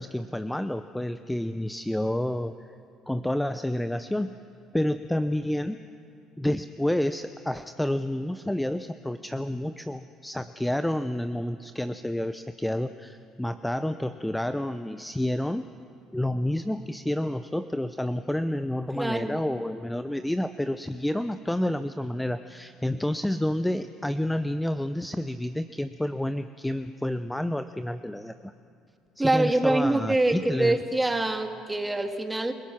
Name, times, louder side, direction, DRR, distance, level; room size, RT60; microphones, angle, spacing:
voice 1, 0.0-2.5 3.1-4.4 4.7-5.8 6.4-15.6 16.1-28.5 29.2-30.8, left 1 dB, 5° left, 11 dB, 0.7 m, -29 dB
voice 2, 19.0-19.4 29.2-32.5, right 2 dB, 15° right, 5 dB, 2.1 m, -25 dB
28.5 x 17.5 x 6.0 m, 2.5 s
hypercardioid pair, 65°, 0 cm